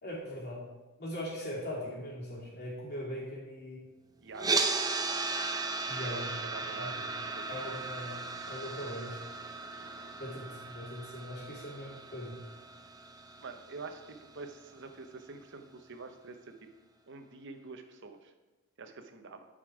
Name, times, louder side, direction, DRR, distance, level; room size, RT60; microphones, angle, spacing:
voice 1, 0.0-0.6 1.0-3.8 5.9-6.3 7.5-8.2 8.5-9.2 10.2-12.4, left 1 dB, 50° left, -5 dB, 2.8 m, -40 dB
voice 2, 4.2-4.6 6.0-7.5 9.8-10.1 13.4-16.7 17.1-18.3 18.8-19.5, right 3 dB, 55° right, 6 dB, 0.8 m, -47 dB
sound 1, 4.4-14.5, right 3 dB, 15° right, 0.5 m, -36 dB
8.8 x 5.1 x 4.9 m, 1.1 s
head